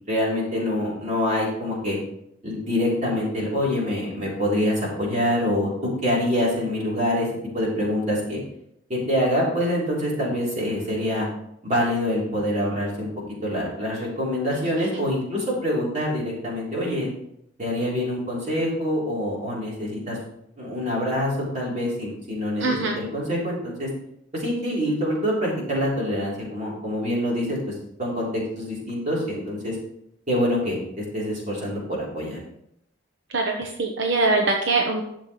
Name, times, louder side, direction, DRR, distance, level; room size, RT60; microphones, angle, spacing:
voice 1, 0.1-2.0 2.4-7.3 7.5-8.4 8.9-11.3 11.6-13.1 13.4-17.1 17.6-20.2 20.6-23.9 24.3-27.7 28.0-29.7 30.3-32.4, left 1 dB, 40° right, -4 dB, 3.4 m, -25 dB
voice 2, 22.6-22.9 33.3-35.0, right 3 dB, 75° right, 2 dB, 0.9 m, -22 dB
11.5 x 7.3 x 3.2 m, 0.76 s
head